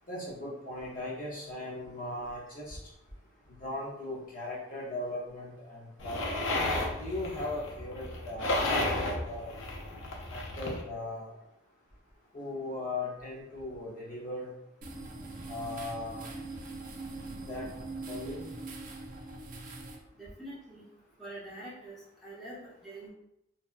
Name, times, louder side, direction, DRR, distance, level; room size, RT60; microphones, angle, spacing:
voice 1, 0.1-2.8 3.6-6.2 7.0-9.5 10.3-11.3 12.3-14.5 15.5-16.3 17.5-17.7 18.1-18.5, left 2 dB, 45° left, -6 dB, 0.6 m, -38 dB
sound 1, 6.0-10.8, left 2 dB, 90° left, 0.5 m, -33 dB
sound 2, 14.8-20.0, right 2 dB, 45° right, 0.4 m, -42 dB
voice 2, 20.2-20.8 21.2-21.9 22.2-23.1, right 1 dB, ahead, -9 dB, 0.8 m, -45 dB
2.6 x 2.1 x 2.3 m, 0.84 s
head